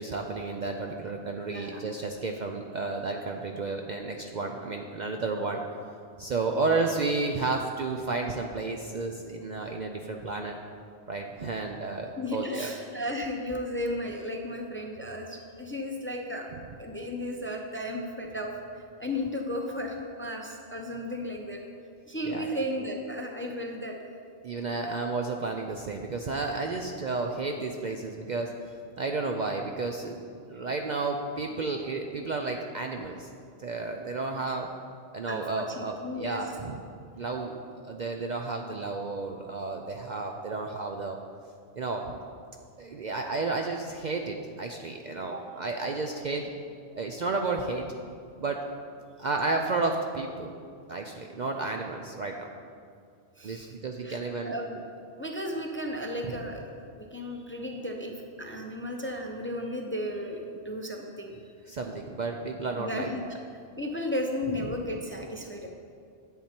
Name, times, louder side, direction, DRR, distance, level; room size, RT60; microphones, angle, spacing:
voice 1, 0.0-5.6 6.2-10.6 11.1-12.7 16.5-16.6 22.2-22.6 24.4-28.5 29.0-30.2 30.5-33.3 33.6-34.7 35.1-36.8 37.1-37.6 37.8-41.2 41.8-42.1 42.8-46.5 46.9-47.8 48.4-48.6 49.2-50.5 50.9-52.5 53.4-54.6 56.2-56.4 61.7-63.3 64.7-64.8, right 3 dB, 50° right, 3 dB, 0.6 m, -32 dB
voice 2, 1.4-1.8 12.2-16.5 16.8-18.5 19.0-21.6 22.1-24.0 24.8-25.0 35.3-36.4 45.3-45.4 53.4-53.7 54.0-54.8 55.2-56.6 57.0-61.4 62.7-63.2 63.8-65.7, left 1 dB, 15° left, 2 dB, 0.6 m, -34 dB
10.5 x 7.7 x 4.4 m, 2.3 s
omnidirectional pair, 1.2 m